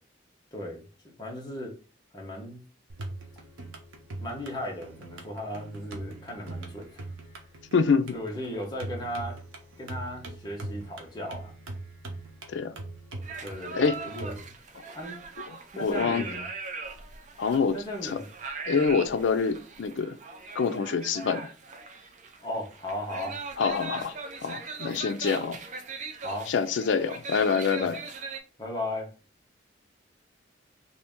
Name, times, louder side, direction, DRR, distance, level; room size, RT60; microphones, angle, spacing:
voice 1, 0.5-1.7 2.1-2.6 4.2-7.1 8.1-9.4 9.8-11.5 13.4-14.5 14.9-15.2 15.7-16.4 17.7-18.2 22.4-23.4 26.2-26.5 27.7-28.0 28.6-29.1, left 1 dB, 20° left, 1.0 m, -36 dB
sound 1, 2.9-14.4, right 2 dB, 90° right, 0.7 m, -41 dB
voice 2, 7.7-8.1 12.5-12.7 13.7-14.0 15.5-16.2 17.4-17.8 18.0-18.2 18.7-20.2 20.6-21.5 23.6-24.1 24.4-25.6 26.5-28.0, left 5 dB, 70° left, 0.4 m, -26 dB
sound 2, 13.2-28.4, right 4 dB, 40° right, 0.4 m, -40 dB
2.8 x 2.7 x 3.5 m
head